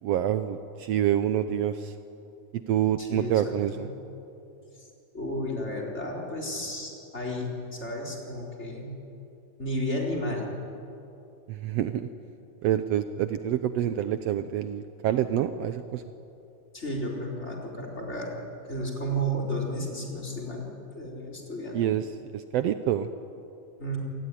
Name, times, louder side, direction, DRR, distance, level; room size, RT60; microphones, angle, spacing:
voice 1, 0.0-1.9 2.7-3.9 11.5-12.1 12.6-16.0 21.7-23.1, right 11 dB, 90° right, 10 dB, 1.4 m, -27 dB
voice 2, 3.0-3.9 4.7-4.9 5.1-8.9 9.6-10.5 16.7-18.3 18.7-20.7 20.9-21.9 23.8-24.0, equal, 20° left, 0 dB, 4.4 m, -33 dB
26.5 x 19.5 x 9.9 m, 2.8 s
omnidirectional pair, 3.8 m